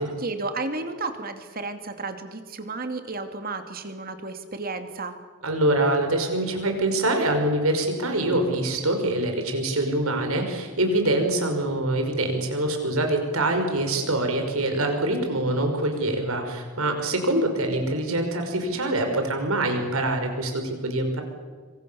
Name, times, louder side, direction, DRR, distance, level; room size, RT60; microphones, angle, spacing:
voice 1, 0.2-5.1, right 3 dB, 40° right, 7 dB, 2.6 m, -32 dB
voice 2, 5.4-21.2, right 1 dB, 75° right, 4 dB, 5.5 m, -24 dB
26.0 x 25.5 x 7.1 m, 1.5 s
head